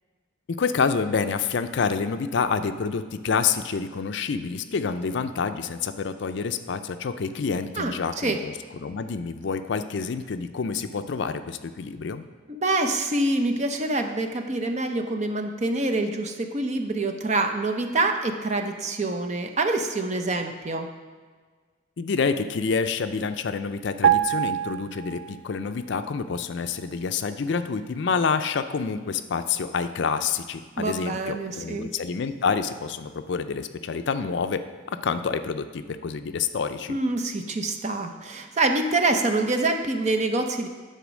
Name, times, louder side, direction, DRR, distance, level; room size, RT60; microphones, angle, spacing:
voice 1, 0.5-8.5 8.8-12.2 22.0-34.6 34.9-37.0, left 5 dB, 65° left, 10 dB, 0.4 m, -28 dB
voice 2, 7.8-8.4 12.5-20.9 30.8-31.9 36.9-40.7, right 2 dB, 35° right, 5 dB, 0.7 m, -26 dB
sound 1, 24.0-25.7 25.9-26.2, right 10 dB, 85° right, 0.3 m, -24 dB
10.0 x 4.3 x 6.2 m, 1.5 s
head